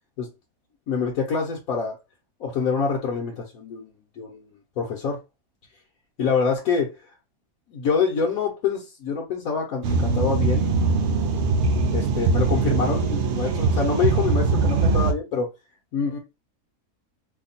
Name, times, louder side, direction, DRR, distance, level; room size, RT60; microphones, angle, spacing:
voice 1, 0.9-2.0 2.4-5.2 6.2-6.9 7.7-10.7 11.9-15.5 15.9-16.2, left 5 dB, 70° left, -2 dB, 1.3 m, -26 dB
sound 1, 9.8-15.1, right 4 dB, 65° right, 0.7 m, -22 dB
2.9 x 2.2 x 4.0 m, 0.25 s
omnidirectional pair, 1.6 m